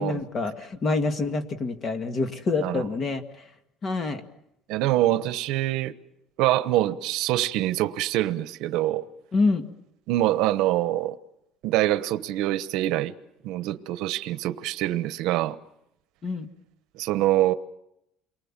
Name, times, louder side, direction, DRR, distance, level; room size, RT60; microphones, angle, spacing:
voice 1, 0.0-3.2 3.8-4.2 9.3-9.6 16.2-16.5, left 3 dB, 30° left, 2.0 m, -26 dB
voice 2, 4.7-5.9 6.4-9.1 10.1-11.2 11.6-13.1 13.4-15.6 16.9-17.5, right 15 dB, 75° right, 1.1 m, -25 dB
28.5 x 23.5 x 7.5 m
cardioid pair, 150°, 0 cm